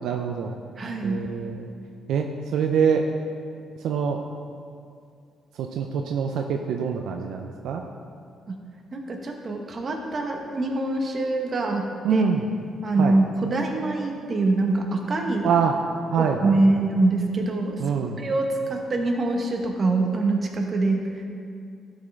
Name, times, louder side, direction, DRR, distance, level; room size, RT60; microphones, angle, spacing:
voice 1, 0.0-0.5 1.0-1.6 2.1-3.0 3.8-4.2 5.6-7.8 12.0-12.4 13.0-13.1 15.4-15.7 16.1-16.5 17.8-18.2, right 7 dB, 80° right, 4 dB, 0.5 m, -24 dB
voice 2, 0.8-1.3 8.5-8.6 8.9-12.2 12.8-15.5 16.2-17.8 18.2-21.2, right 2 dB, 40° right, 2 dB, 1.1 m, -24 dB
12.0 x 5.3 x 3.6 m, 2.3 s
cardioid pair, 90°, 0 cm